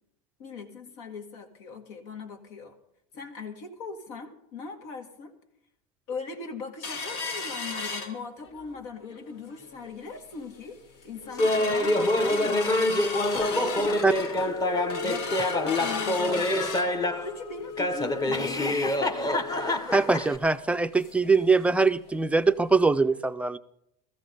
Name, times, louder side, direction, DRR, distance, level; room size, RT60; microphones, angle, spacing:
voice 1, 0.4-2.7 3.1-5.3 6.1-10.8 11.0-13.1 13.5-14.0 14.4-14.6 15.0-16.7 17.1-19.3, left 4 dB, 80° left, 5 dB, 2.2 m, -39 dB
sound 1, 6.8-8.7 9.1-9.2 9.5-9.9 10.4-10.5 10.8-21.3 21.7-21.8 22.1-22.3 22.8-22.9, left 4 dB, 60° left, 2.2 m, -35 dB
Laughter, 11.4-17.3 17.8-20.4, left 1 dB, 20° left, 0.9 m, -26 dB
voice 2, 19.9-23.6, right 4 dB, 5° right, 11 dB, 0.4 m, -22 dB
16.0 x 14.5 x 3.8 m, 0.77 s
supercardioid pair, 135°, 19 cm